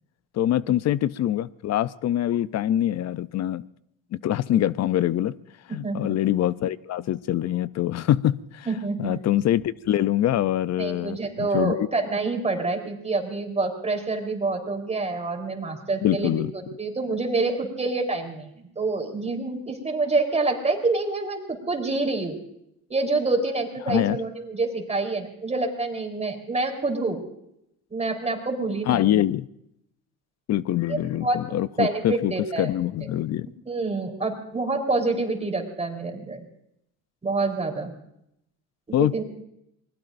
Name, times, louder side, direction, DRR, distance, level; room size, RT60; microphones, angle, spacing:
voice 1, 0.3-3.6 4.1-5.3 5.7-8.7 9.0-11.9 16.0-16.5 23.8-24.2 28.9-29.5 30.5-32.3 32.6-33.5 38.9-39.2, left 12 dB, 50° left, 16 dB, 0.6 m, -24 dB
voice 2, 5.8-6.2 8.7-9.2 10.8-16.4 16.8-22.4 22.9-27.2 27.9-29.2 30.9-31.5 31.8-32.7 33.7-36.4 37.2-37.9 39.0-39.2, right 3 dB, 20° right, 3 dB, 3.9 m, -27 dB
26.5 x 21.0 x 2.6 m, 0.78 s
cardioid pair, 110°, 35 cm